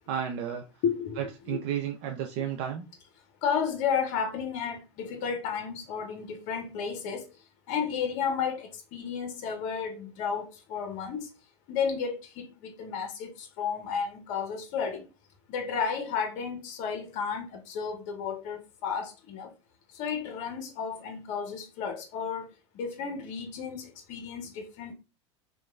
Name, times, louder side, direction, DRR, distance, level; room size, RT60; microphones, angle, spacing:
voice 1, 0.0-0.7 1.2-2.9, right 9 dB, 60° right, 0.4 m, -32 dB
voice 2, 0.8-1.2 1.5-1.6 3.4-7.3 7.7-11.3 11.7-15.1 15.5-19.5 19.9-22.5 22.7-24.9, left 6 dB, 55° left, 0.7 m, -32 dB
2.9 x 2.2 x 2.3 m
hypercardioid pair, 90°, 15 cm